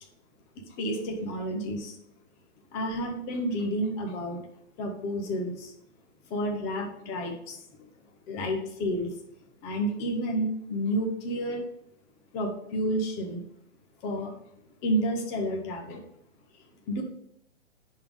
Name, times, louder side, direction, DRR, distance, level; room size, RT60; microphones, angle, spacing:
voice 1, 0.8-2.0 2.7-4.4 4.8-5.7 6.3-7.6 8.3-9.1 9.6-11.6 12.3-13.4 14.0-14.3 14.8-16.0 16.9-17.0, equal, 10° left, 2 dB, 0.5 m, -30 dB
10.0 x 3.6 x 4.8 m, 0.73 s
hypercardioid pair, 150°, 36 cm